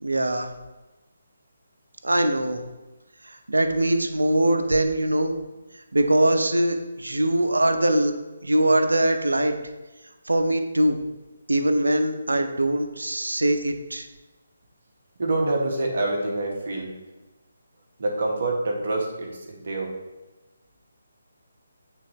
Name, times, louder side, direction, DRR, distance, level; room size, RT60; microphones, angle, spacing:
voice 1, 0.0-0.5 2.0-2.6 3.2-5.3 5.9-8.1 8.4-9.6 10.3-11.0 11.5-14.1, right 1 dB, 80° right, 6 dB, 0.7 m, -22 dB
voice 2, 15.2-16.9 18.0-19.9, right 2 dB, 55° right, 0 dB, 1.2 m, -26 dB
8.2 x 3.6 x 3.1 m, 1.1 s
figure-of-eight pair, 145°, 0 cm